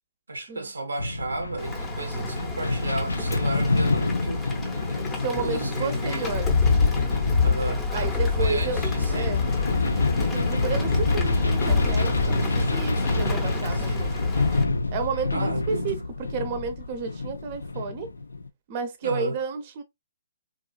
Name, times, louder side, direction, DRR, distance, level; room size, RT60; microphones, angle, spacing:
voice 1, 0.3-4.5 5.3-6.5 7.4-9.5 13.7-14.1 15.3-16.1 19.0-19.4, right 2 dB, 90° right, 0.6 m, -33 dB
sound 1, 1.0-18.5, left 2 dB, 90° left, 0.3 m, -27 dB
Rain, 1.6-14.6, left 2 dB, 15° left, 0.6 m, -36 dB
voice 2, 5.0-6.5 7.9-8.8 9.1-9.4 10.3-14.1 14.9-16.0 16.3-18.1 18.7-19.8, right 5 dB, 40° right, 0.5 m, -31 dB
sound 2, 6.3-14.8 15.3-15.5 16.1-17.0 17.3-17.7, left 5 dB, 70° left, 0.7 m, -26 dB
2.9 x 2.3 x 2.2 m
hypercardioid pair, 135°, 0 cm